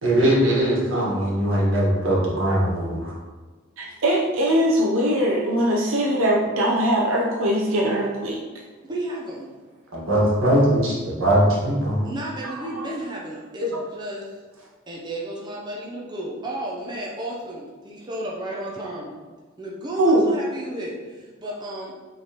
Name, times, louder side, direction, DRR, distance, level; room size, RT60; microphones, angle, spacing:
voice 1, 0.0-3.2 9.9-12.1, right 1 dB, 75° right, -5 dB, 1.4 m, -20 dB
voice 2, 3.8-8.4 12.4-12.9 13.6-13.8 20.0-20.3, equal, 90° right, -3 dB, 0.6 m, -21 dB
voice 3, 8.9-9.5 12.0-14.4 14.9-21.9, right 1 dB, 20° right, -4 dB, 0.6 m, -33 dB
5.2 x 3.3 x 2.9 m, 1.4 s
head